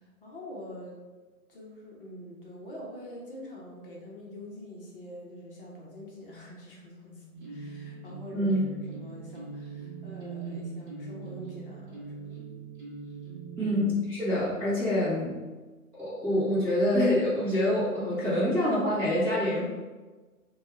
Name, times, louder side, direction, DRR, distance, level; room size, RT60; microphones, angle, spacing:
voice 1, 0.2-1.0 1.5-8.6 8.9-12.4 13.6-13.7, left 1 dB, 40° left, -3 dB, 0.8 m, -45 dB
sound 1, 7.3-13.9, right 5 dB, 35° right, 0.9 m, -41 dB
voice 2, 13.6-15.4 16.0-19.6, left 1 dB, 5° right, -17 dB, 0.6 m, -26 dB
3.4 x 2.3 x 3.1 m, 1.3 s
hypercardioid pair, 150°, 45 cm